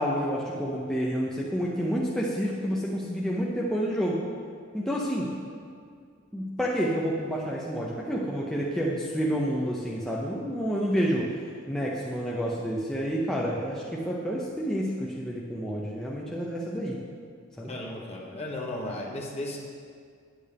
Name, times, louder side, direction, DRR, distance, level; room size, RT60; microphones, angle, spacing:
voice 1, 0.0-4.2 4.7-5.3 6.3-11.3 11.7-17.0 17.6-17.7, equal, 5° left, -5 dB, 0.6 m, -29 dB
voice 2, 17.7-19.6, left 1 dB, 30° left, -2 dB, 1.2 m, -35 dB
8.8 x 8.7 x 3.4 m, 2.2 s
head